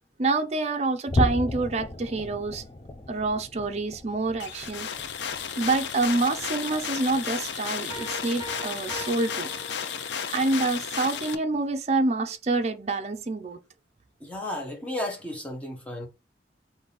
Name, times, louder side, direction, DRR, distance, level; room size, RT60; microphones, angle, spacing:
voice 1, 0.2-2.6 3.1-4.9 5.6-9.5 10.3-13.6, right 3 dB, 35° right, 0.5 m, -27 dB
sound 1, 1.1-7.7 8.1-8.4 8.8-8.9 9.5-9.6, left 1 dB, 25° left, 0.4 m, -34 dB
sound 2, 4.4-11.3, left 7 dB, 80° left, 0.5 m, -33 dB
Piano, 7.9-10.4, right 3 dB, 20° right, 2.2 m, -42 dB
voice 2, 14.2-16.1, left 1 dB, 10° left, 1.1 m, -33 dB
3.9 x 2.7 x 4.0 m
head